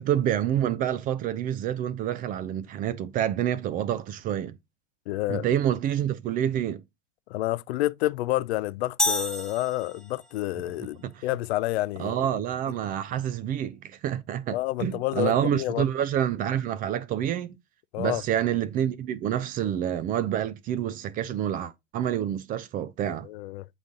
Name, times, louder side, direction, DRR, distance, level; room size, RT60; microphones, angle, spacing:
voice 1, 0.0-4.6 5.3-6.8 11.0-11.2 12.0-17.6 18.0-23.3, right 10 dB, 25° right, 0.4 m, -28 dB
voice 2, 5.1-5.5 7.3-12.3 14.5-15.8 17.9-18.2 23.1-23.7, left 17 dB, 60° left, 0.4 m, -29 dB
sound 1, 9.0-10.4, left 2 dB, ahead, 0.9 m, -29 dB
7.9 x 3.9 x 3.7 m
hypercardioid pair, 105°, 37 cm